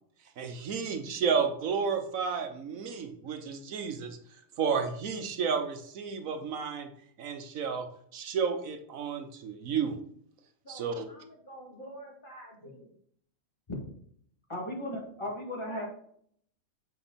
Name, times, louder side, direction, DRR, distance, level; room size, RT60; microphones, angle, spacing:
voice 1, 0.4-4.2 4.6-6.9 7.2-7.9 8.1-10.0 10.7-11.0, right 6 dB, 75° right, 7 dB, 1.2 m, -31 dB
voice 2, 10.6-12.9 15.7-15.8, right 1 dB, 40° left, 0 dB, 1.7 m, -48 dB
voice 3, 14.5-15.8, left 1 dB, 20° left, -3 dB, 2.1 m, -36 dB
7.8 x 4.8 x 4.0 m, 0.63 s
omnidirectional pair, 1.4 m